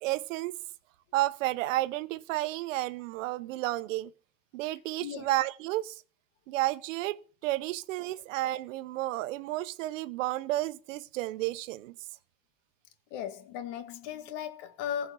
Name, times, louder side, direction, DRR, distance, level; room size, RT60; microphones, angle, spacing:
voice 1, 0.0-0.5 1.1-4.1 4.5-6.0 6.5-12.0, right 17 dB, 90° right, 0.8 m, -32 dB
voice 2, 13.1-15.1, left 9 dB, 75° left, 1.9 m, -37 dB
15.0 x 5.3 x 7.1 m
supercardioid pair, 105°, 37 cm